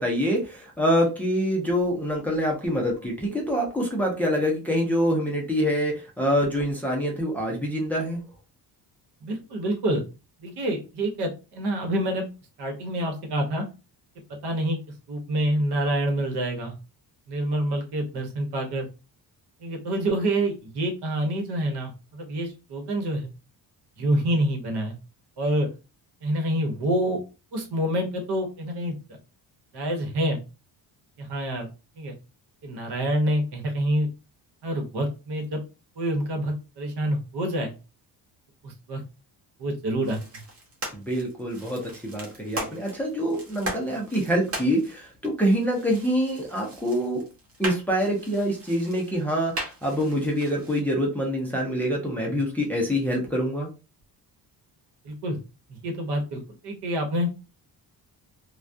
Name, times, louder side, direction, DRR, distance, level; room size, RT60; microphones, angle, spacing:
voice 1, 0.0-8.2 40.9-47.2 47.6-53.7, equal, 5° left, -2 dB, 0.5 m, -25 dB
voice 2, 9.2-10.0 10.4-12.2 12.6-13.7 14.4-14.8 15.1-16.7 17.3-18.9 19.6-23.3 24.0-24.9 25.4-25.7 26.2-27.2 27.5-29.0 29.7-30.4 31.2-31.7 32.0-32.1 32.6-34.1 34.6-35.6 36.0-37.7 38.6-39.0 39.6-40.4 55.0-55.4 55.7-57.3, right 1 dB, 75° right, 3 dB, 1.0 m, -27 dB
sound 1, 40.0-50.8, right 1 dB, 35° right, 0.8 m, -39 dB
2.3 x 2.2 x 2.5 m, 0.30 s
cardioid pair, 155°, 40 cm